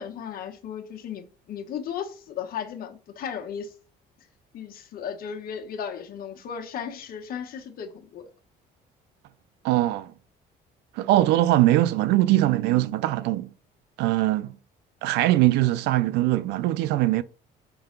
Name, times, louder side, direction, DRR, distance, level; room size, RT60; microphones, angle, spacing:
voice 1, 0.0-3.7 4.5-8.3, left 7 dB, 60° left, 1.2 m, -35 dB
voice 2, 9.6-10.1 10.9-13.5 14.0-14.5 15.0-17.2, right 15 dB, 90° right, 0.4 m, -21 dB
5.5 x 3.9 x 5.2 m
cardioid pair, 110°, 17 cm